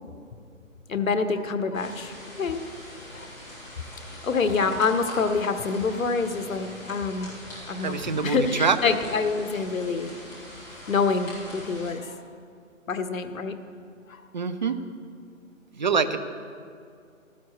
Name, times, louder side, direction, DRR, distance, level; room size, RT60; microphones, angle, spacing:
voice 1, 0.9-2.6 3.1-3.3 4.2-7.3 7.7-10.1 10.9-12.2 12.9-13.5 14.1-14.2, left 4 dB, 80° left, 8 dB, 1.2 m, -26 dB
sound 1, 1.7-11.9, left 1 dB, 5° left, 2.0 m, -43 dB
voice 2, 7.5-9.0 14.3-14.7 15.8-16.2, right 5 dB, 35° right, 10 dB, 0.5 m, -25 dB
15.0 x 13.5 x 3.1 m, 2.3 s
hypercardioid pair, 160°, 40 cm